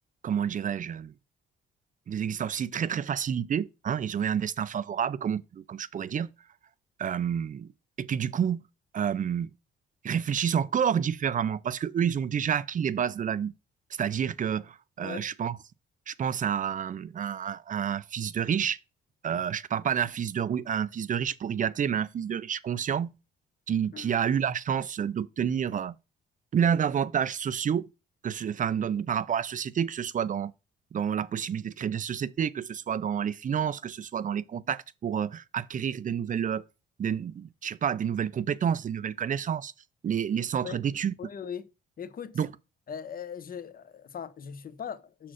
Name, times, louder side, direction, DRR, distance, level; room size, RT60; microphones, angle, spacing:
voice 1, 0.2-1.1 2.1-6.3 7.0-7.7 8.0-8.6 8.9-9.5 10.0-13.5 14.0-15.6 16.1-18.8 19.2-23.1 23.7-26.0 26.5-27.9 28.2-30.5 30.9-36.6 37.0-39.7 40.0-41.1 42.4-42.5, right 8 dB, 40° right, 0.5 m, -29 dB
voice 2, 41.2-41.7 42.0-42.4 42.9-45.3, left 7 dB, 45° left, 1.0 m, -39 dB
6.1 x 4.3 x 6.3 m
cardioid pair, 90°, 20 cm